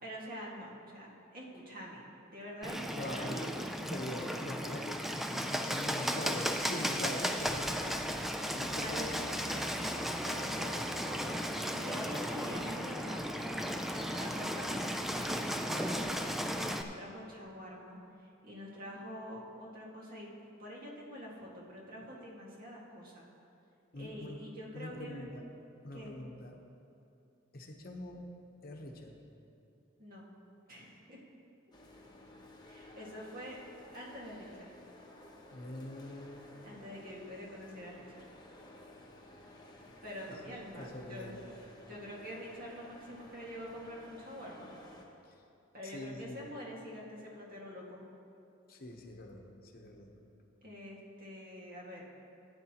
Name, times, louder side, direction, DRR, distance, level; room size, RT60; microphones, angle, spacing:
voice 1, 0.0-2.1 2.3-3.5 8.6-9.7 11.7-14.8 15.1-20.3 20.6-23.2 23.9-25.3 25.9-26.1 30.0-30.3 30.7-31.2 32.7-33.6 33.9-34.7 36.6-38.3 40.0-41.3 41.9-44.7 45.7-48.0 50.6-52.1, equal, 45° right, -4 dB, 1.9 m, -46 dB
Bird, 2.6-16.8, equal, ahead, 0.4 m, -35 dB
voice 2, 3.0-3.6 3.9-9.1 10.8-11.6 23.9-24.4 24.7-25.4 25.8-26.6 27.5-28.2 28.6-29.2 35.5-36.5 40.8-41.4 45.2-45.3 45.8-46.5 48.7-50.1, left 1 dB, 45° left, 2 dB, 1.0 m, -44 dB
sound 1, 8.4-14.0 14.3-14.4, equal, 70° right, 1.6 m, -50 dB
sound 2, 31.7-45.0, left 1 dB, 20° left, 1.0 m, -55 dB
15.0 x 9.4 x 2.9 m, 2.7 s
head